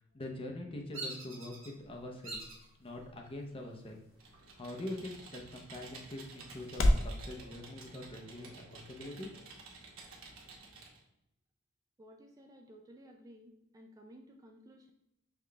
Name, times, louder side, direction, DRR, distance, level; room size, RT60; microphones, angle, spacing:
voice 1, 0.1-2.4 2.8-4.0 4.6-9.3, left 1 dB, 25° left, 2 dB, 0.6 m, -44 dB
sound 1, 0.9-7.2, left 1 dB, 70° left, 0.6 m, -37 dB
Bird vocalization bird call bird song, 0.9-1.7 2.2-2.7 3.2-3.7 4.9-5.7 6.0-6.1 6.6-8.0, right 2 dB, 70° right, 1.3 m, -46 dB
Computer keyboard, 4.1-11.0, right 3 dB, 90° right, 1.0 m, -52 dB
voice 2, 12.0-14.9, equal, 15° right, 2 dB, 0.3 m, -55 dB
5.7 x 2.4 x 3.3 m, 0.83 s
head